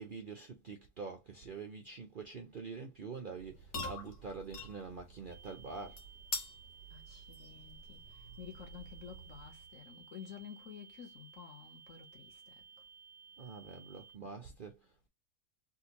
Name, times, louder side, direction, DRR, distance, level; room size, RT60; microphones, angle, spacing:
voice 1, 0.0-6.0 13.4-15.1, right 4 dB, 65° right, 0.5 m, -46 dB
sound 1, 3.3-9.7, left 2 dB, 85° left, 1.8 m, -46 dB
sound 2, 5.3-14.2, right 6 dB, 10° left, 0.7 m, -57 dB
voice 2, 6.9-12.9, left 8 dB, 55° left, 1.2 m, -52 dB
3.6 x 2.5 x 2.8 m
omnidirectional pair, 1.7 m